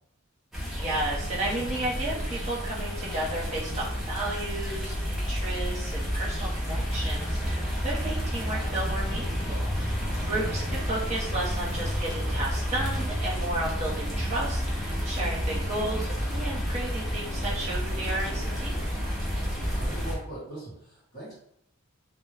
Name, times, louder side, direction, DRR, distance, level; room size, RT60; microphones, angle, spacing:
sound 1, 0.5-20.2, equal, ahead, 0.4 m, -30 dB
voice 1, 0.7-18.9, right 2 dB, 30° right, -5 dB, 0.7 m, -33 dB
voice 2, 19.5-21.3, right 2 dB, 45° left, -9 dB, 1.0 m, -40 dB
2.1 x 2.0 x 3.2 m, 0.74 s
head